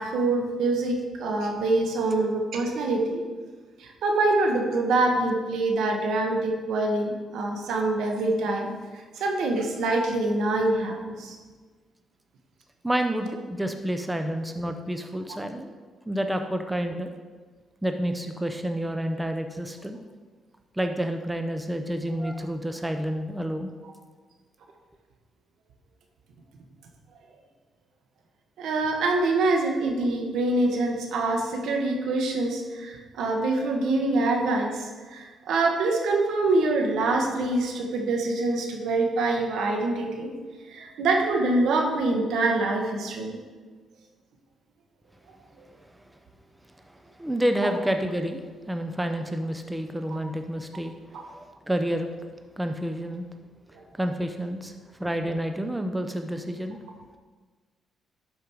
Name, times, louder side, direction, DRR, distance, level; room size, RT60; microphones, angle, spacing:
voice 1, 0.0-3.2 3.8-11.4 28.6-40.3 40.7-43.4 50.1-50.2 51.1-51.2, right 2 dB, 75° right, 2 dB, 1.5 m, -25 dB
voice 2, 12.8-15.7 16.1-17.1 17.8-20.0 20.7-23.7 46.9-52.1 52.6-53.2 54.0-54.7 55.0-56.8, equal, 10° right, 6 dB, 0.7 m, -29 dB
12.0 x 5.2 x 4.7 m, 1.4 s
cardioid pair, 90°, 0 cm